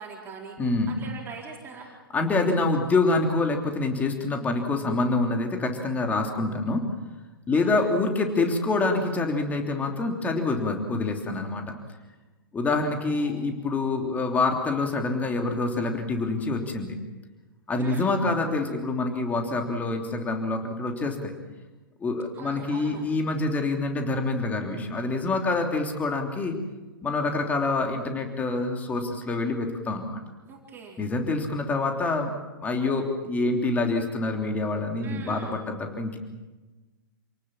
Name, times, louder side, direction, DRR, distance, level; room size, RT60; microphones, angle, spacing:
voice 1, 0.0-1.9 7.5-7.9 13.0-13.4 17.8-18.1 22.3-23.0 30.5-31.0 35.0-35.5, right 5 dB, 20° right, -1 dB, 4.3 m, -42 dB
voice 2, 0.6-1.0 2.1-6.9 7.5-11.6 12.5-17.0 17.7-21.3 22.0-26.5 27.0-30.2 31.0-32.3 32.6-36.2, left 3 dB, 15° left, 3 dB, 3.1 m, -26 dB
28.5 x 18.5 x 7.5 m, 1.2 s
figure-of-eight pair, 115°, 12 cm